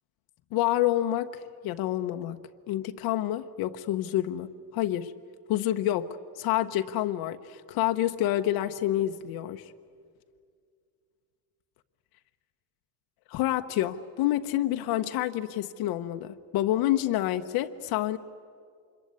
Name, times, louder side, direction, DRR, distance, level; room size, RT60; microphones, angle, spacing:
voice 1, 0.5-2.4 2.7-5.1 5.5-6.1 6.4-9.6 13.3-18.2, left 13 dB, 65° left, 7 dB, 0.9 m, -28 dB
26.5 x 22.5 x 9.7 m, 2.2 s
cardioid pair, 160°, 39 cm